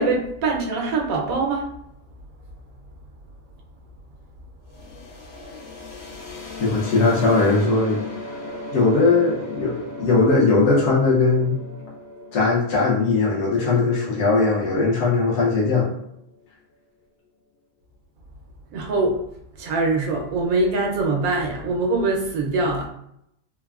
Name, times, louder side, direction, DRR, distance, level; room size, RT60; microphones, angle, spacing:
voice 1, 0.0-1.7 18.7-19.2 19.6-22.9, right 3 dB, 90° right, 0 dB, 1.1 m, -23 dB
sound 1, 4.7-16.4, left 3 dB, 80° left, 1.2 m, -37 dB
voice 2, 6.6-8.0 8.7-11.6 12.3-16.0, left 3 dB, 60° left, -6 dB, 0.9 m, -19 dB
3.3 x 2.1 x 2.3 m, 0.75 s
omnidirectional pair, 1.5 m